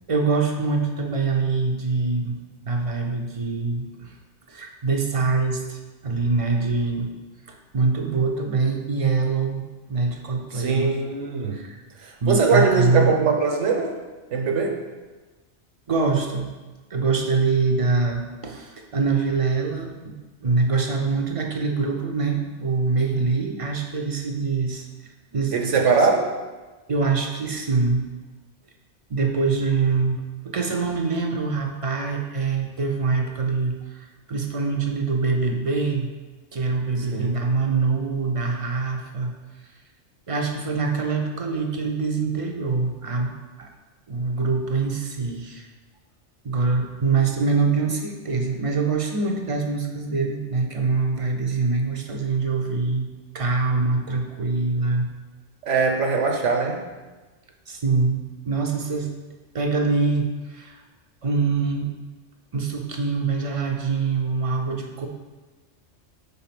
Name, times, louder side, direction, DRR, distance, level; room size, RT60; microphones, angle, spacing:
voice 1, 0.1-2.4 2.7-4.1 4.5-5.8 6.0-7.1 7.5-9.6 9.9-11.0 11.5-11.8 12.2-13.1 15.9-16.5 16.9-20.1 20.4-25.7 26.9-28.1 29.1-36.1 36.5-39.3 40.3-43.3 43.6-43.7 44.1-45.7 46.4-53.1 53.3-55.1 57.7-59.1 59.5-60.8 61.2-61.9 62.5-65.1, right 4 dB, 35° right, 2 dB, 0.6 m, -24 dB
voice 2, 10.5-11.6 12.0-13.9 14.3-14.8 25.5-26.3 37.1-37.4 55.6-56.8, right 4 dB, 80° right, 2 dB, 1.2 m, -21 dB
5.4 x 4.0 x 5.9 m, 1.2 s
omnidirectional pair, 1.2 m